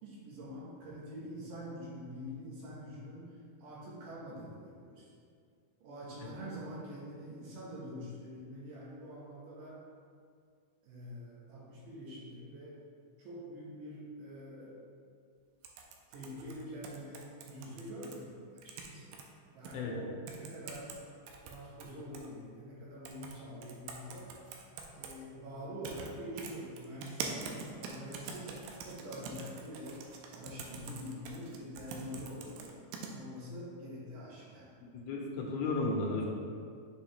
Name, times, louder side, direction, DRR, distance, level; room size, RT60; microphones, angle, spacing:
voice 1, 0.0-5.1 5.8-9.8 10.8-12.8 13.2-14.9 16.1-18.4 18.6-19.2 19.5-20.9 21.4-24.4 24.9-30.0 30.3-32.8 33.1-34.7, equal, 70° right, -6 dB, 2.6 m, -45 dB
sound 1, 15.6-18.2 18.6-19.2 19.7-19.8 20.3-21.0 21.3-22.3 23.1-23.4 23.6-25.2 25.8-26.1 26.4-33.1, right 5 dB, 90° right, 2.6 m, -44 dB
voice 2, 34.9-36.3, left 3 dB, 90° left, -1 dB, 2.7 m, -33 dB
7.0 x 4.8 x 3.1 m, 2.2 s
omnidirectional pair, 4.4 m